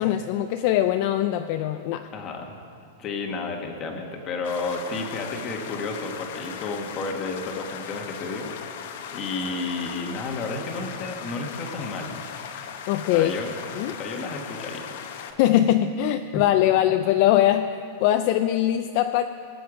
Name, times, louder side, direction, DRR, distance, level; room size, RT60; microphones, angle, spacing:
voice 1, 0.0-2.1 12.9-13.3 13.8-13.9 15.4-17.7 18.0-19.2, left 12 dB, 40° left, 8 dB, 0.3 m, -21 dB
voice 2, 2.1-2.5 3.0-8.8 9.1-12.2 13.1-14.9 16.3-16.4, left 3 dB, 25° left, 3 dB, 1.2 m, -32 dB
sound 1, 4.4-15.3, left 8 dB, 55° left, 0.8 m, -38 dB
20.0 x 7.8 x 4.8 m, 2.5 s
supercardioid pair, 175°, 0 cm